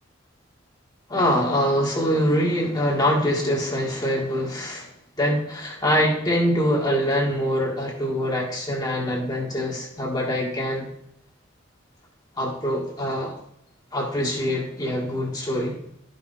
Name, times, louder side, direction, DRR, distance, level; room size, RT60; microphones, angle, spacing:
voice 1, 1.1-4.9 5.2-10.9 12.4-13.3 13.9-15.8, equal, 20° left, -2 dB, 1.8 m, -24 dB
12.5 x 5.8 x 4.1 m, 0.74 s
head